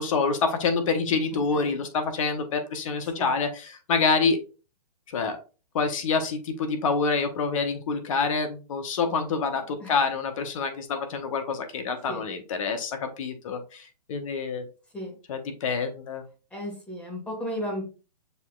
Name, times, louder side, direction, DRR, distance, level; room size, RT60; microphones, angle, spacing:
voice 1, 0.0-4.4 5.1-5.4 5.7-14.7 15.3-16.2, left 4 dB, 50° left, 7 dB, 0.9 m, -27 dB
voice 2, 1.5-1.8 3.2-3.4 9.8-10.0 12.1-12.2 14.9-15.2 16.5-17.8, equal, 5° left, -1 dB, 1.4 m, -34 dB
6.6 x 2.9 x 2.3 m, 0.34 s
hypercardioid pair, 140°, 21 cm